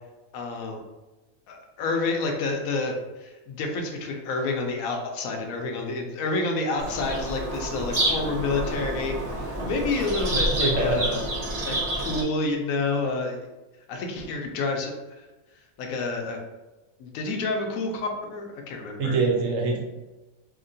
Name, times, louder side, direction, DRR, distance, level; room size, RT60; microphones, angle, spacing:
voice 1, 0.3-0.8 1.5-11.2 11.6-13.4 13.9-15.3 15.8-16.4 17.0-19.2, left 3 dB, 80° left, 2 dB, 1.0 m, -29 dB
Bird vocalization bird call bird song, 6.8-12.2, right 1 dB, 35° right, 0.6 m, -28 dB
voice 2, 10.5-11.0 19.0-19.8, right 3 dB, 70° right, 0 dB, 1.0 m, -24 dB
2.8 x 2.8 x 2.6 m, 1.1 s
omnidirectional pair, 1.5 m